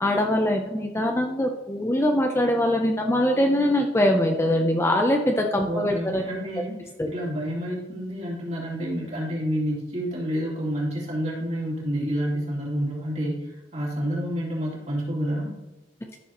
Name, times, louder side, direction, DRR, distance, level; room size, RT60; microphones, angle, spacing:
voice 1, 0.0-6.2 7.0-7.1, left 1 dB, 15° left, 2 dB, 0.6 m, -22 dB
voice 2, 5.6-15.5, equal, 35° right, -5 dB, 3.0 m, -29 dB
13.5 x 6.9 x 3.0 m, 1.0 s
head